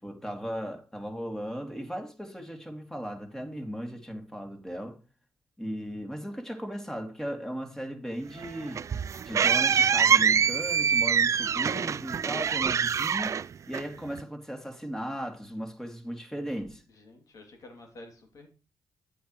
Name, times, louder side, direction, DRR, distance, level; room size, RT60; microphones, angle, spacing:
voice 1, 0.0-5.0 5.6-8.8 9.2-13.4 13.7-16.8, equal, 5° left, 2.8 m, -37 dB
sound 1, 8.4-14.2, right 7 dB, 55° right, 0.3 m, -25 dB
voice 2, 16.9-18.5, left 2 dB, 65° left, 2.9 m, -50 dB
10.5 x 7.9 x 3.2 m
supercardioid pair, 45°, 6 cm